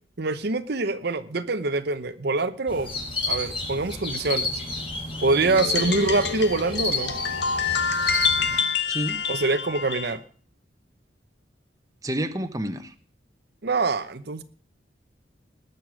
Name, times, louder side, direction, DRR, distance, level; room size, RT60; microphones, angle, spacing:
voice 1, 0.2-2.9 3.2-4.5 5.2-7.1 9.3-10.2 13.6-14.4, right 3 dB, 55° right, 10 dB, 0.8 m, -25 dB
sound 1, 2.7-8.6, left 2 dB, 30° left, 5.3 m, -30 dB
sound 2, 5.4-10.2, left 6 dB, 65° left, 1.6 m, -27 dB
voice 2, 8.9-9.2 12.0-12.9, equal, 20° right, 7 dB, 1.0 m, -29 dB
19.5 x 6.9 x 6.2 m, 0.42 s
head